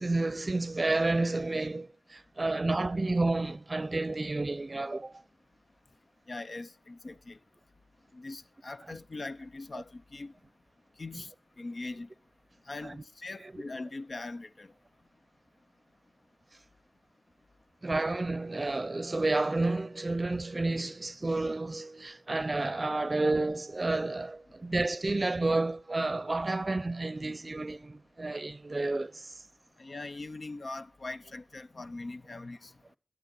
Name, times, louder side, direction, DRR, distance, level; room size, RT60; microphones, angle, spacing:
voice 1, 0.0-5.2 11.1-11.2 12.8-12.9 17.8-29.4, right 2 dB, 35° right, 0.6 m, -30 dB
voice 2, 6.3-7.4 8.1-10.3 11.0-11.3 11.6-12.1 12.7-14.7 29.8-32.7, left 2 dB, 55° left, 0.5 m, -41 dB
22.0 x 8.1 x 3.9 m
wide cardioid pair, 75°, 0 cm